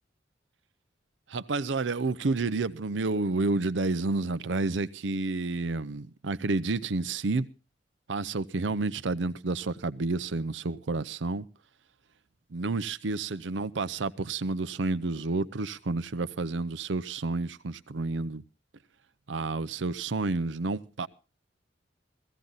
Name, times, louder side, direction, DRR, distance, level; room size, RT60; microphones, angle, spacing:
voice 1, 1.3-7.5 8.1-11.4 12.5-18.4 19.3-21.1, right 3 dB, 90° right, 0.7 m, -30 dB
16.5 x 15.5 x 4.0 m
head